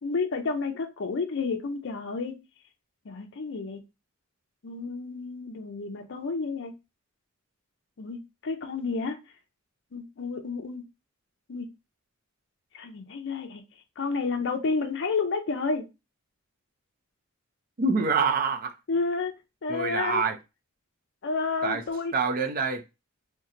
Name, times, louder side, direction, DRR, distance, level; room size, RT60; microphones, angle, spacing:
voice 1, 0.0-2.4 3.1-3.8 4.6-6.7 8.0-9.2 9.9-10.8 11.5-11.7 12.7-13.6 14.0-15.9 18.9-19.3 19.6-20.2 21.2-22.1, left 4 dB, 60° left, 0.5 m, -30 dB
voice 2, 17.8-18.7 19.7-20.4 21.6-21.8 22.1-22.8, right 4 dB, 45° right, 0.5 m, -26 dB
2.8 x 2.1 x 3.7 m
head